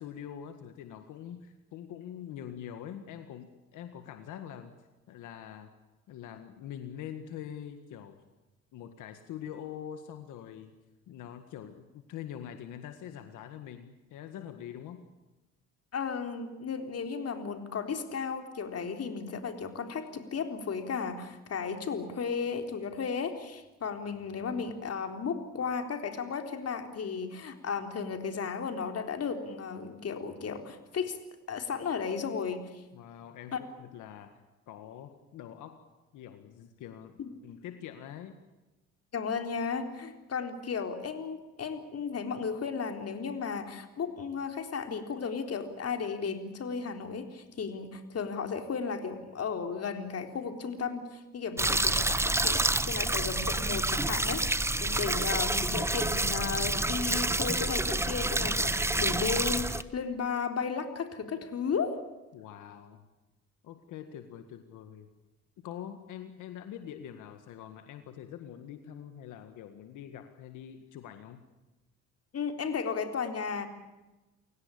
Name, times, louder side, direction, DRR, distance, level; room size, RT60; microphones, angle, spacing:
voice 1, 0.0-4.7 5.1-5.7 6.1-8.2 8.7-10.7 11.1-15.0 32.9-34.4 34.7-35.8 36.1-38.4 62.3-63.0 63.6-65.1 65.6-71.4, left 10 dB, 90° left, 8 dB, 1.8 m, -44 dB
voice 2, 15.9-31.2 31.5-32.6 33.5-33.6 39.1-62.0 72.3-73.7, left 5 dB, 55° left, 6 dB, 3.9 m, -34 dB
sound 1, 51.6-59.8, right 2 dB, 10° right, 1.1 m, -28 dB
30.0 x 17.5 x 8.6 m, 1.1 s
cardioid pair, 90°, 30 cm